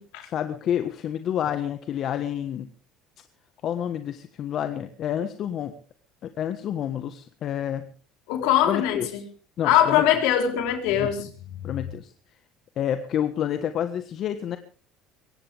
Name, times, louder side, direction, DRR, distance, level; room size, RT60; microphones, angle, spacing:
voice 1, 0.2-2.7 3.6-5.7 6.2-7.9 8.6-9.2 9.6-10.0 11.0-11.3 11.6-12.1 12.8-14.6, left 10 dB, 55° left, 9 dB, 1.4 m, -29 dB
voice 2, 8.3-9.0 9.6-11.3, left 10 dB, 75° left, 4 dB, 4.0 m, -21 dB
23.0 x 17.5 x 3.5 m, 0.40 s
supercardioid pair, 80°, 0 cm